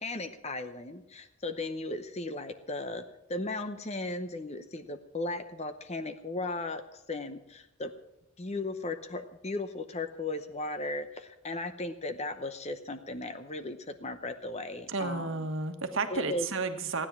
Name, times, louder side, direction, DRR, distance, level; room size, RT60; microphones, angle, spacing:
voice 1, 0.0-3.0 3.3-6.8 7.1-7.9 8.4-15.5 16.1-16.5, left 2 dB, 30° left, 9 dB, 0.8 m, -36 dB
voice 2, 14.9-17.1, right 4 dB, 60° right, 7 dB, 1.4 m, -32 dB
16.0 x 9.9 x 7.2 m, 0.85 s
head